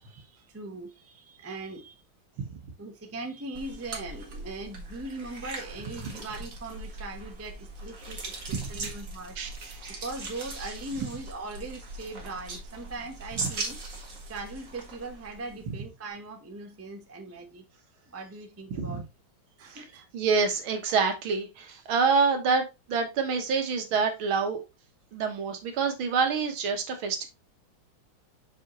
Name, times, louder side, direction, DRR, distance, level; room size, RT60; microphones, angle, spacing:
voice 1, 0.0-2.0 2.8-9.4 9.9-13.8 14.3-17.6 18.1-19.0 19.6-20.1, right 2 dB, 15° right, 0.6 m, -40 dB
sound 1, 3.5-15.7, right 2 dB, 45° right, 1.9 m, -40 dB
voice 2, 8.5-8.9 9.4-10.0 18.7-19.0 19.7-19.8 20.1-24.6 25.1-27.3, right 5 dB, 80° right, 2.1 m, -27 dB
6.4 x 5.0 x 3.0 m
omnidirectional pair, 2.2 m